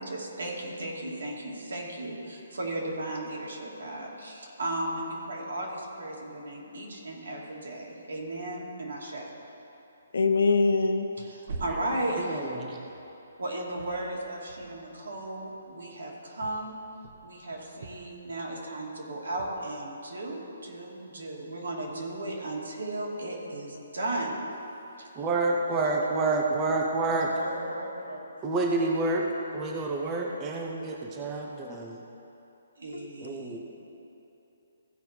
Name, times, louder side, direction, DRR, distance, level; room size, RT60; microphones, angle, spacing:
voice 1, 0.0-9.3 11.2-12.5 13.4-16.8 17.2-24.3 25.0-25.1 25.5-26.4 27.3-28.3 32.8-33.6, right 1 dB, 80° right, -2 dB, 2.5 m, -35 dB
voice 2, 10.1-11.1 32.9-33.1, left 3 dB, 80° left, 7 dB, 0.8 m, -23 dB
sound 1, 10.4-10.5 10.8-13.4 13.7-15.8 16.4-18.8 19.4-19.7, right 3 dB, 45° right, 0.9 m, -45 dB
voice 3, 12.2-12.8 25.2-27.3 28.4-29.3 29.5-32.0 33.2-33.6, right 3 dB, 15° right, 0 dB, 0.7 m, -28 dB
15.5 x 5.3 x 4.5 m, 2.9 s
hypercardioid pair, 170°, 0 cm